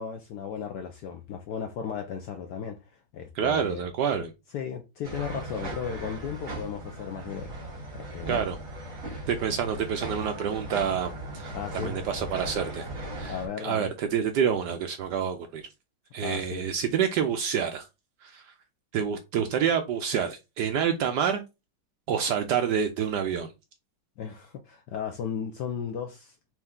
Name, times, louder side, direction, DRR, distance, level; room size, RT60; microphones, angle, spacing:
voice 1, 0.0-3.9 4.5-8.5 11.5-12.0 13.2-13.9 16.2-16.7 24.2-26.4, left 7 dB, 70° left, 1.0 m, -35 dB
voice 2, 3.3-4.3 8.3-8.6 9.3-12.9 13.2-15.7 16.1-17.9 18.2-18.5 18.9-21.4 22.1-23.5, right 8 dB, 75° right, 1.0 m, -28 dB
sound 1, 5.0-13.5, right 1 dB, 40° right, 2.0 m, -38 dB
4.4 x 2.7 x 3.5 m
omnidirectional pair, 2.3 m